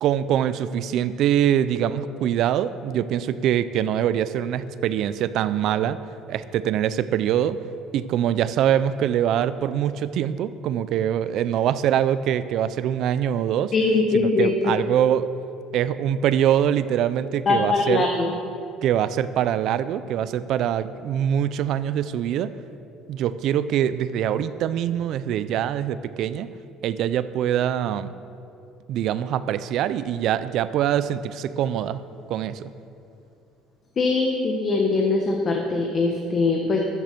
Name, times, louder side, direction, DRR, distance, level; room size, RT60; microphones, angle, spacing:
voice 1, 0.0-6.0 6.3-7.6 7.9-13.7 14.1-15.3 15.7-18.1 18.8-22.5 23.1-26.5 26.8-28.1 28.9-32.0 32.3-32.7, right 10 dB, 60° right, 14 dB, 0.4 m, -23 dB
voice 2, 13.7-14.5 17.5-18.3 34.0-36.8, left 3 dB, 35° left, 1 dB, 1.3 m, -22 dB
13.5 x 7.7 x 6.8 m, 2.6 s
cardioid pair, 140°, 0 cm